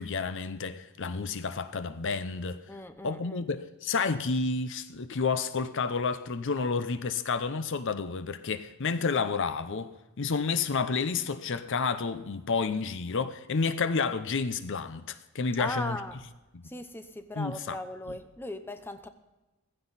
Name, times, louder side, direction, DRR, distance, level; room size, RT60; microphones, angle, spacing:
voice 1, 0.0-2.6 3.0-9.9 10.2-16.0 16.5-16.7 17.4-17.8 18.1-18.2, left 4 dB, 55° left, 0.6 m, -30 dB
voice 2, 2.7-3.4 15.6-16.2 16.6-19.1, left 1 dB, 10° left, 0.7 m, -38 dB
15.5 x 15.0 x 4.1 m
head